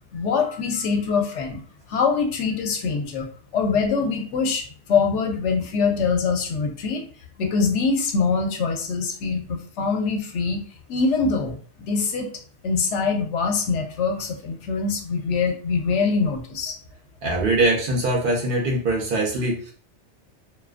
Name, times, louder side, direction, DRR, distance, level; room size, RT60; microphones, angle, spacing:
voice 1, 0.1-1.6 1.9-3.3 3.5-7.1 7.4-10.6 10.9-12.3 12.6-16.8, left 5 dB, 75° left, 3 dB, 0.9 m, -24 dB
voice 2, 17.2-19.7, right 2 dB, 60° right, -1 dB, 0.7 m, -22 dB
2.4 x 2.3 x 2.4 m, 0.43 s
omnidirectional pair, 1.2 m